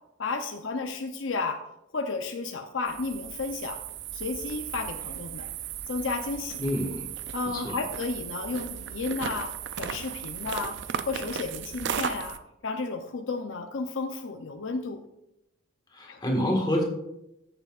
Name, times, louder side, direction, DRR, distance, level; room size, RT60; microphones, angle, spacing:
voice 1, 0.2-1.6 1.9-3.8 4.1-5.5 5.9-6.6 7.3-10.8 11.1-12.4 12.6-15.0 16.1-16.2, left 3 dB, 70° left, 6 dB, 0.6 m, -32 dB
sound 1, 2.9-12.4, right 8 dB, 60° right, 0.4 m, -36 dB
voice 2, 6.6-7.1 7.5-7.8 15.9-16.8, equal, 20° left, 0 dB, 1.6 m, -27 dB
14.0 x 6.9 x 2.4 m, 0.86 s
head